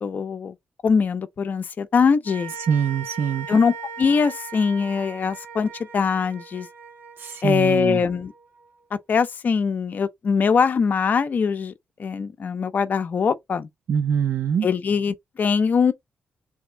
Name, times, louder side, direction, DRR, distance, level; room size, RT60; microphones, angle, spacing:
voice 1, 0.0-0.5 0.8-2.5 3.5-6.7 7.4-8.3 9.1-11.7 12.0-13.7 14.6-15.9, left 5 dB, 45° left, 0.7 m, -22 dB
sound 1, 2.2-8.7, right 6 dB, 90° right, 1.6 m, -39 dB
voice 2, 2.7-3.5 7.2-8.0 13.9-14.7, right 7 dB, 70° right, 0.7 m, -23 dB
3.5 x 2.9 x 4.5 m
wide cardioid pair, 135°, 4 cm